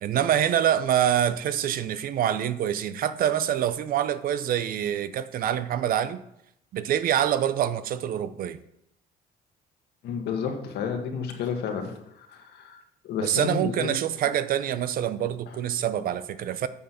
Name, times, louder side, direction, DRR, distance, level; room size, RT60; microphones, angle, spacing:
voice 1, 0.0-6.2 6.7-8.6 13.2-16.7, right 10 dB, 60° right, 0.6 m, -25 dB
voice 2, 10.0-14.0 15.5-15.6, left 6 dB, 75° left, 1.6 m, -31 dB
8.7 x 5.5 x 5.7 m
cardioid pair, 110°, 17 cm